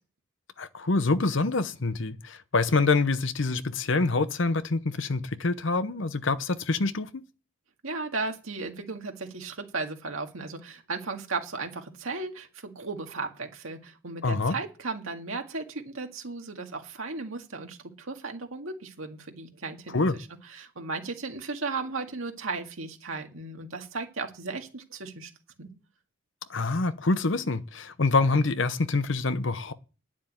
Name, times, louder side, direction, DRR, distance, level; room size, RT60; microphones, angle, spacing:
voice 1, 0.6-7.1 14.2-14.6 19.9-20.2 26.5-29.7, left 3 dB, 60° left, 0.9 m, -26 dB
voice 2, 7.8-25.3 25.6-25.7, right 3 dB, 80° right, 2.0 m, -35 dB
10.0 x 7.4 x 8.9 m
head